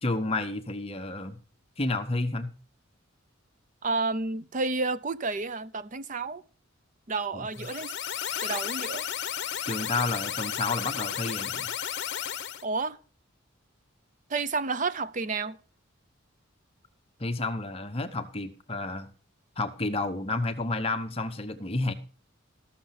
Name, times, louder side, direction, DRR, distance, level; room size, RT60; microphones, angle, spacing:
voice 1, 0.0-1.4 1.8-2.5 7.3-7.5 9.7-11.7 17.2-19.1 19.6-21.9, left 2 dB, 30° left, 1.0 m, -30 dB
voice 2, 3.8-6.4 7.1-7.9 8.4-9.0 12.6-13.0 14.3-15.6, right 3 dB, 40° right, 0.5 m, -30 dB
sound 1, 7.5-12.6, left 9 dB, 55° left, 0.9 m, -33 dB
14.0 x 6.6 x 5.8 m
head